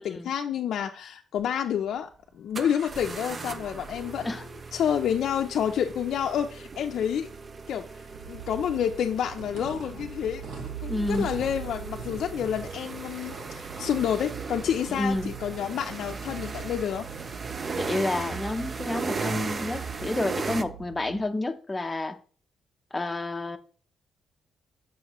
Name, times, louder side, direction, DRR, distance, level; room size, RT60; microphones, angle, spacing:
voice 1, 0.0-2.1 2.3-4.3 4.7-7.3 7.7-7.8 8.3-10.4 10.8-17.0, left 9 dB, 70° left, 0.4 m, -29 dB
sound 1, 1.4-1.5 2.5-20.6, right 4 dB, 35° right, 0.4 m, -37 dB
sound 2, 8.1-21.2, right 11 dB, 90° right, 0.7 m, -44 dB
sound 3, 9.3-17.4, right 2 dB, 60° right, 1.7 m, -46 dB
voice 2, 10.9-11.3 14.9-15.3 17.8-22.2 22.9-23.6, left 2 dB, 15° left, 0.6 m, -29 dB
7.2 x 6.1 x 3.0 m
cardioid pair, 120°, 0 cm